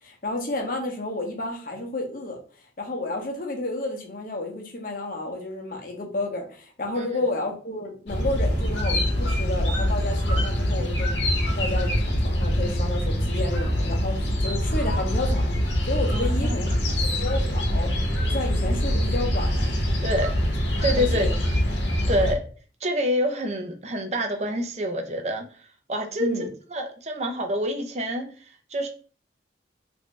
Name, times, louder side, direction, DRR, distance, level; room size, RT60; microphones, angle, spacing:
voice 1, 0.0-2.4 2.8-11.1 11.6-16.7 17.2-17.9 18.3-19.7 21.0-21.3 26.2-26.5, left 2 dB, 50° left, 0.8 m, -31 dB
sound 1, 8.1-22.3, equal, 80° left, 0.9 m, -24 dB
voice 2, 16.1-16.5 16.9-17.0 20.0-20.3 20.8-21.3 22.1-22.4 22.8-25.4 25.9-26.3 26.7-28.9, equal, 35° right, 0.5 m, -27 dB
3.2 x 2.6 x 3.1 m
head